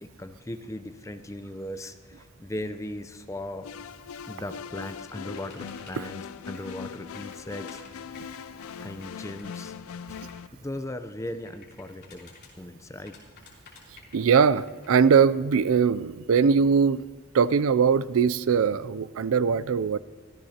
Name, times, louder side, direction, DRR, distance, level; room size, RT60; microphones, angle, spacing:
voice 1, 0.0-3.7 4.3-7.8 8.8-9.7 10.6-13.2, left 1 dB, 15° left, 8 dB, 0.6 m, -38 dB
sound 1, 3.6-10.5, left 7 dB, 75° left, 0.4 m, -40 dB
sound 2, 5.3-6.0 6.5-6.8 7.1-10.4 11.4-12.5 13.1-15.0, left 5 dB, 50° left, 3.3 m, -52 dB
voice 2, 14.1-17.0 17.3-20.0, right 6 dB, 70° right, 17 dB, 0.4 m, -21 dB
23.0 x 15.0 x 2.9 m, 1.4 s
head